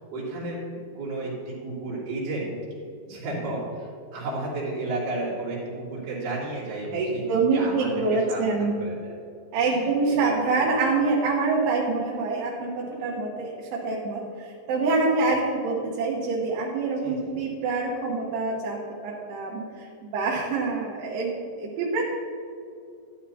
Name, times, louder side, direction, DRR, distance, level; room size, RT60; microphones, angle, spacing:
voice 1, 0.1-0.6 0.9-2.5 3.0-9.1 9.6-10.3 17.0-17.3, right 2 dB, 55° right, -9 dB, 4.4 m, -33 dB
voice 2, 6.9-8.8 9.5-21.3 21.6-22.0, right 3 dB, 85° right, -4 dB, 3.3 m, -26 dB
13.0 x 11.0 x 2.8 m, 2.5 s
omnidirectional pair, 4.6 m